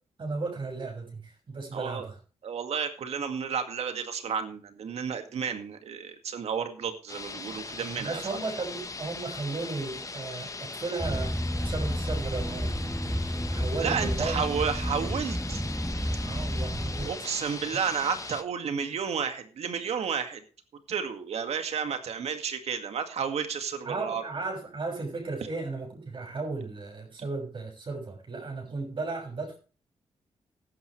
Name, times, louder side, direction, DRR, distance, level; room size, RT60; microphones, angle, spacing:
voice 1, 0.2-2.2 8.0-11.4 11.6-14.4 16.2-17.3 23.8-29.6, right 3 dB, 50° right, 1 dB, 6.7 m, -35 dB
voice 2, 1.7-2.1 2.4-8.2 13.8-15.6 17.0-20.4 20.9-24.2, right 6 dB, 75° right, 7 dB, 2.0 m, -31 dB
sound 1, 7.1-18.4, left 3 dB, 30° left, 1.1 m, -40 dB
sound 2, 11.0-17.1, equal, ahead, 1.6 m, -31 dB
15.5 x 11.0 x 3.2 m, 0.37 s
cardioid pair, 80°, 11 cm